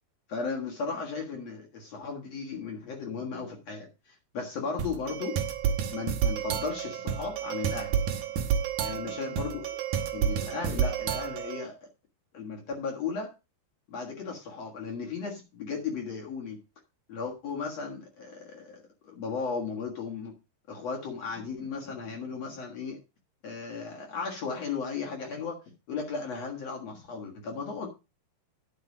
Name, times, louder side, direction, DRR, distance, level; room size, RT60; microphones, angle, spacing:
voice 1, 0.3-5.4 5.9-7.9 8.8-9.6 10.1-11.8 12.3-13.3 13.9-16.6 17.1-20.3 20.7-23.0 23.4-25.6 25.9-27.9, left 5 dB, 55° left, 0 dB, 2.0 m, -35 dB
sound 1, 4.8-11.6, right 8 dB, 70° right, 1.9 m, -30 dB
9.9 x 5.8 x 6.1 m, 0.28 s
omnidirectional pair, 5.1 m